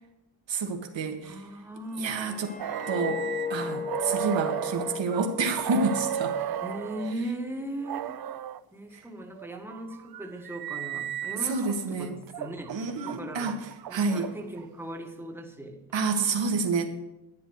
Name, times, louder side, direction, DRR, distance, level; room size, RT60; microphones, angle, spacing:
voice 1, 0.5-1.3 2.0-2.6 2.9-3.2 3.5-6.4 11.4-12.2 12.7-14.3 15.9-16.9, right 4 dB, 65° right, 4 dB, 1.8 m, -28 dB
voice 2, 1.2-2.1 6.6-8.2 8.7-13.6 13.9-15.8, right 1 dB, 5° right, 3 dB, 1.6 m, -38 dB
sound 1, 1.9-7.0 7.3-7.7, left 5 dB, 20° left, 0.4 m, -36 dB
sound 2, 2.6-7.1 7.8-8.6 9.4-11.7 12.3-14.7, right 10 dB, 50° right, 0.5 m, -35 dB
11.5 x 9.8 x 6.4 m, 0.95 s
wide cardioid pair, 135°, 48 cm